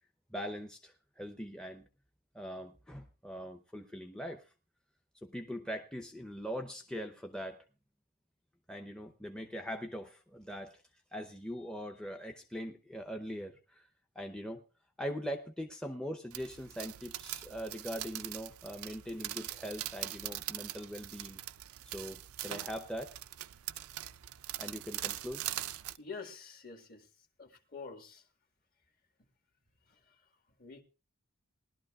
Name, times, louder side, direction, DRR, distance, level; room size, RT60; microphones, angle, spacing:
voice 1, 0.3-1.9 2.3-4.5 5.2-7.6 8.7-10.8 11.1-13.9 14.2-14.6 15.0-21.4 21.9-23.2 24.6-25.5, equal, 5° left, 4 dB, 0.7 m, -41 dB
sound 1, 16.3-26.0, right 14 dB, 85° right, 0.5 m, -42 dB
voice 2, 26.0-27.0 27.4-28.2 30.6-30.8, left 4 dB, 45° left, 5 dB, 1.7 m, -46 dB
19.5 x 12.0 x 2.4 m, 0.32 s
head